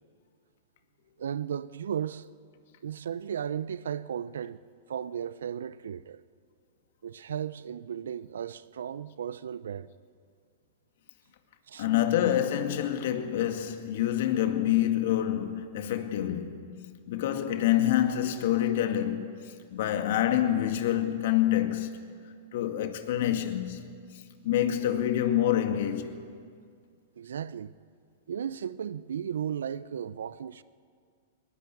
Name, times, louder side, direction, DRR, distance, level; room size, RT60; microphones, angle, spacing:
voice 1, 1.2-2.3 2.8-4.6 4.9-6.2 7.0-9.9 11.7-11.8 27.2-27.8 28.3-30.6, right 8 dB, 75° right, 0.7 m, -35 dB
voice 2, 11.8-22.1 22.5-24.0 24.4-26.2, left 11 dB, 65° left, 2.2 m, -27 dB
21.0 x 20.5 x 8.5 m
hypercardioid pair, 110°, 0 cm